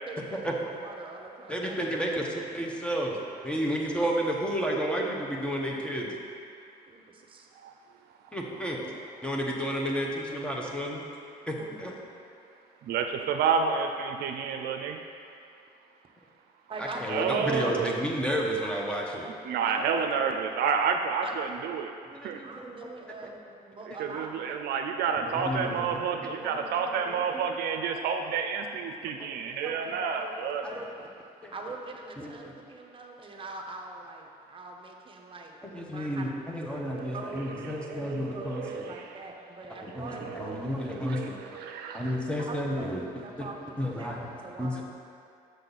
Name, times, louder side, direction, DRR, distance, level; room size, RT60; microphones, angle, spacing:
voice 1, 0.1-1.8 6.9-7.5 8.5-9.0 11.5-11.9 16.7-17.3 19.6-20.1 21.2-21.4 22.4-24.6 30.1-31.1 31.5-35.6 35.8-36.8 37.1-37.4 37.9-40.9 42.4-44.8, right 3 dB, 30° right, 1 dB, 0.9 m, -43 dB
voice 2, 1.5-3.2 3.4-6.1 8.3-8.8 9.2-11.0 11.5-11.9 16.8-19.3 22.3-22.7 25.3-25.9 26.2-27.2 29.2-29.4 29.6-29.7 30.6-30.8 31.4-31.5 32.2-32.3 35.6-38.8 39.8-41.3 41.9-43.5 43.8-44.2 44.6-44.8, equal, 5° left, -2 dB, 1.0 m, -31 dB
voice 3, 12.8-15.0 17.1-17.9 19.4-21.9 22.2-22.4 24.0-30.6 36.8-37.2 37.8-37.9 38.4-39.0 39.9-42.2, right 6 dB, 70° right, 4 dB, 0.5 m, -30 dB
6.6 x 6.6 x 4.1 m, 2.5 s
cardioid pair, 110°, 17 cm